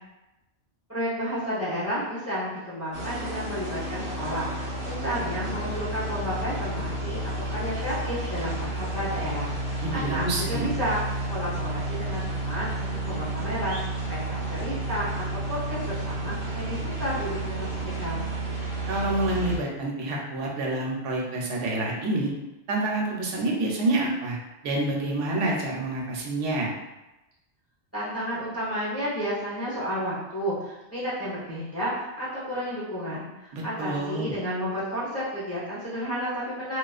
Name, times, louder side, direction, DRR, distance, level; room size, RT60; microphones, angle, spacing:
voice 1, 0.9-11.0 11.3-18.3 27.9-36.8, equal, 15° left, -10 dB, 0.6 m, -32 dB
sound 1, 2.9-19.6, right 2 dB, 55° right, 0.8 m, -31 dB
voice 2, 9.8-10.7 18.9-22.3 22.7-24.4 24.6-26.7 33.5-34.3, right 2 dB, 85° right, -2 dB, 0.9 m, -28 dB
2.3 x 2.3 x 2.3 m, 0.99 s
omnidirectional pair, 1.2 m